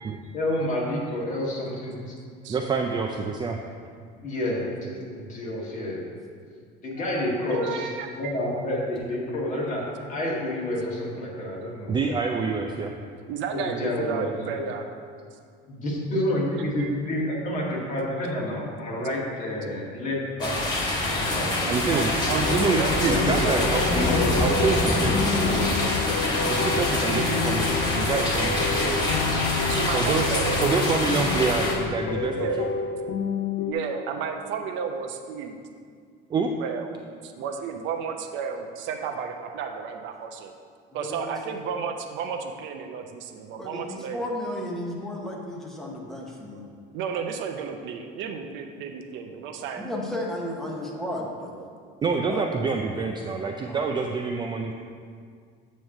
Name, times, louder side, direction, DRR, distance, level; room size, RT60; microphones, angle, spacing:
voice 1, 0.3-2.1 2.5-2.6 4.2-6.1 6.8-7.9 8.2-12.1 13.5-14.3 14.5-14.6 15.7-20.6 21.1-21.5 23.0-24.6, left 1 dB, 40° left, -4 dB, 1.8 m, -29 dB
voice 2, 2.5-3.6 11.9-12.9 21.7-23.9 24.4-26.1 26.5-29.1 29.9-30.3 30.6-32.7 36.3-36.5 52.0-54.7, right 4 dB, 20° right, 2 dB, 0.3 m, -27 dB
voice 3, 7.5-8.3 12.4-12.5 13.3-14.8 16.8-16.9 19.8-20.0 20.8-20.9 21.6-23.9 29.0-31.0 32.3-32.7 33.7-35.6 36.4-40.5 40.9-44.2 46.2-46.7 46.9-49.9 50.7-50.8 51.4-51.9 52.5-53.5, right 6 dB, 65° right, 5 dB, 0.7 m, -33 dB
sound 1, 20.4-31.7, left 2 dB, 20° left, 1.4 m, -25 dB
sound 2, 22.4-33.7, left 5 dB, 65° left, 0.5 m, -30 dB
voice 4, 41.0-41.3 43.6-46.6 49.8-51.5 52.3-52.4 53.6-53.8, left 1 dB, ahead, -2 dB, 1.0 m, -33 dB
8.8 x 3.1 x 6.4 m, 2.1 s
cardioid pair, 140°, 21 cm